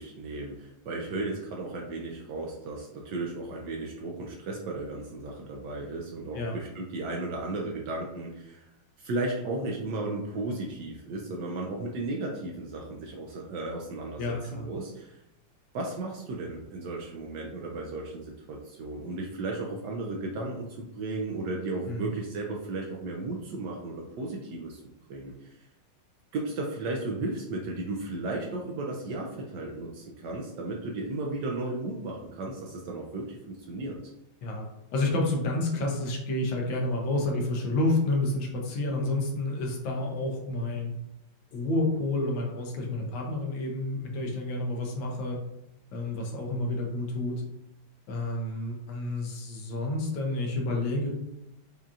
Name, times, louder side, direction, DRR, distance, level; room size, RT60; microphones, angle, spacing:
voice 1, 0.0-8.6 9.0-15.2 15.7-24.8 25.1-25.6 26.3-34.0, right 2 dB, 75° right, 0 dB, 1.0 m, -35 dB
voice 2, 14.2-14.7 21.9-22.1 34.4-34.6 34.9-40.9 41.5-45.4 45.9-47.4 48.1-51.1, left 2 dB, 75° left, 0 dB, 1.5 m, -29 dB
5.0 x 2.8 x 2.4 m, 0.84 s
omnidirectional pair, 2.2 m